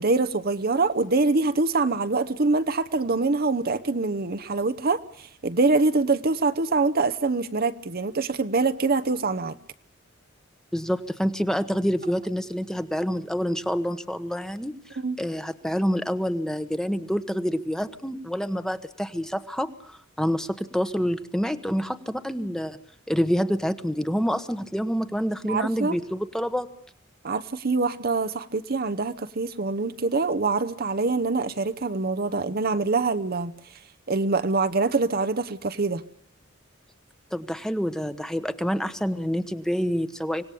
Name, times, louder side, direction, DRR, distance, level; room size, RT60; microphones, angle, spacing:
voice 1, 0.0-9.6 15.0-15.2 25.5-26.0 27.2-33.5 34.1-36.0, right 3 dB, 50° right, 0.9 m, -24 dB
voice 2, 10.7-22.8 23.1-26.7 37.3-40.4, equal, 5° left, 1.2 m, -27 dB
25.5 x 18.5 x 8.4 m
head